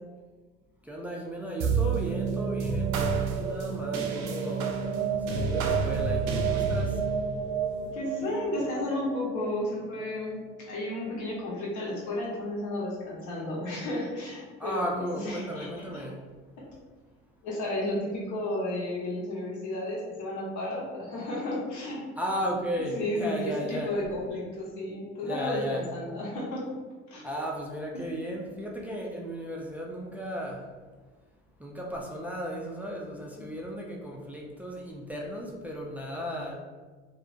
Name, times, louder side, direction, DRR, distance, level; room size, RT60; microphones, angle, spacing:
voice 1, 0.8-4.7 5.3-7.1 14.6-16.2 22.2-23.9 25.2-25.8 27.2-30.7 31.6-36.6, equal, 5° right, -2 dB, 0.3 m, -35 dB
sound 1, 1.6-10.3, right 5 dB, 70° right, 0.4 m, -29 dB
voice 2, 7.8-16.0 16.6-16.7 17.4-22.0 22.9-26.7 27.1-27.2 27.9-28.1 33.4-33.5, left 1 dB, 60° left, -4 dB, 1.0 m, -33 dB
2.5 x 2.1 x 2.5 m, 1.4 s
hypercardioid pair, 70°, 34 cm